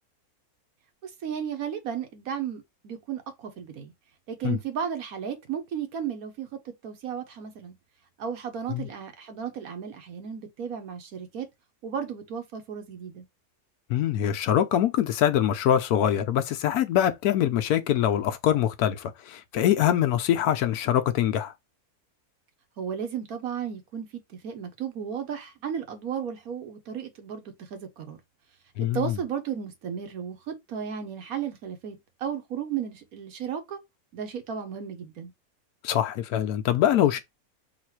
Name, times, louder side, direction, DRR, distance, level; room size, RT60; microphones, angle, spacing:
voice 1, 1.0-3.9 4.3-7.8 8.2-11.5 11.8-13.3 22.8-28.2 28.9-33.8 34.1-35.3, right 8 dB, 70° right, 1.3 m, -34 dB
voice 2, 13.9-21.5 28.8-29.1 35.8-37.2, left 11 dB, 80° left, 1.1 m, -24 dB
4.0 x 2.5 x 4.4 m
omnidirectional pair, 1.6 m